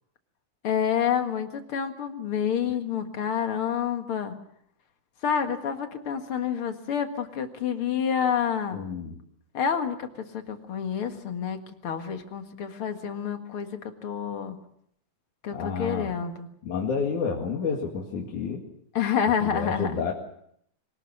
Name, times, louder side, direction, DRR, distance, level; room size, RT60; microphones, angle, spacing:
voice 1, 0.6-4.4 5.2-8.8 9.5-14.6 15.4-16.5 18.9-20.0, left 8 dB, 50° left, 6 dB, 2.4 m, -28 dB
voice 2, 8.7-9.2 15.5-16.1 16.6-18.6 19.4-20.1, left 5 dB, 75° left, -1 dB, 3.6 m, -30 dB
24.5 x 18.5 x 7.2 m, 0.70 s
omnidirectional pair, 3.5 m